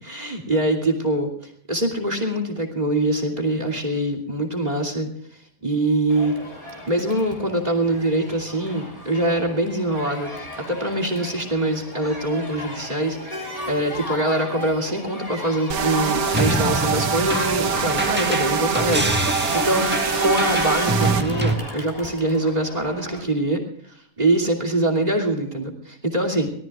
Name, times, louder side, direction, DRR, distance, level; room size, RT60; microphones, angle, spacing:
voice 1, 0.0-6.4 6.9-19.9 20.2-26.5, right 1 dB, 30° right, 6 dB, 2.9 m, -24 dB
Crowd, 6.1-23.2, left 2 dB, 25° left, 3.7 m, -35 dB
sound 1, 15.7-21.2, right 6 dB, 85° right, 1.6 m, -24 dB
sound 2, 16.3-21.5, right 1 dB, 5° right, 1.6 m, -25 dB
24.5 x 18.5 x 2.4 m, 0.64 s
omnidirectional pair, 1.5 m